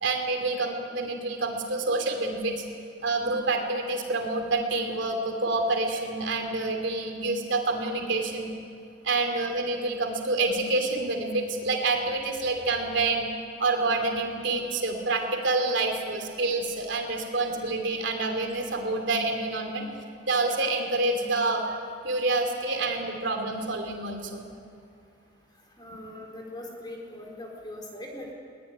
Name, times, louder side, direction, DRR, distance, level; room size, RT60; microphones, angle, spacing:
voice 1, 0.0-2.6 3.0-8.5 9.0-13.3 13.6-19.9 20.2-21.6 22.0-24.5, right 3 dB, 60° right, 4 dB, 3.2 m, -27 dB
voice 2, 25.8-28.3, left 1 dB, 20° left, 0 dB, 3.9 m, -41 dB
22.0 x 19.5 x 9.9 m, 2.5 s
head